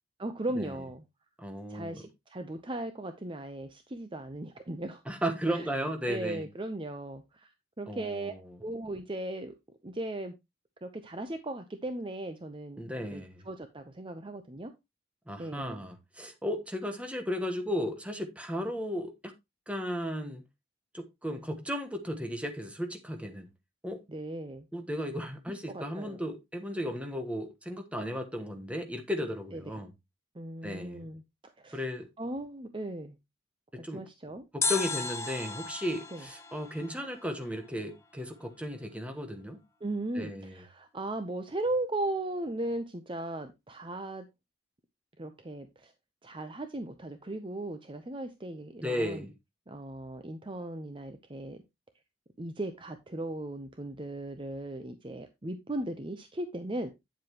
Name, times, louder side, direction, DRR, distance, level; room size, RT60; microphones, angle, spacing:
voice 1, 0.2-1.0 1.7-5.0 5.5-5.7 6.1-7.5 7.8-8.3 8.6-9.5 9.8-10.3 10.8-12.8 13.1-14.7 15.4-15.8 24.1-24.7 25.7-26.2 29.5-29.6 30.3-31.8 32.2-33.2 33.8-34.4 36.1-36.3 39.8-44.3 45.2-45.9 46.2-49.2 49.7-51.6 52.4-56.9, right 1 dB, 25° right, 0.7 m, -37 dB
voice 2, 1.4-2.0 5.1-6.4 7.9-8.6 12.8-13.5 15.3-19.3 19.7-20.4 20.9-23.5 23.8-24.0 24.7-29.9 30.6-31.1 31.7-32.1 33.7-34.0 34.5-39.6 40.1-40.6 48.8-49.3, equal, 5° right, 1.3 m, -35 dB
sound 1, 34.6-37.7 37.9-38.0, left 4 dB, 15° left, 0.8 m, -35 dB
9.1 x 7.8 x 3.0 m
head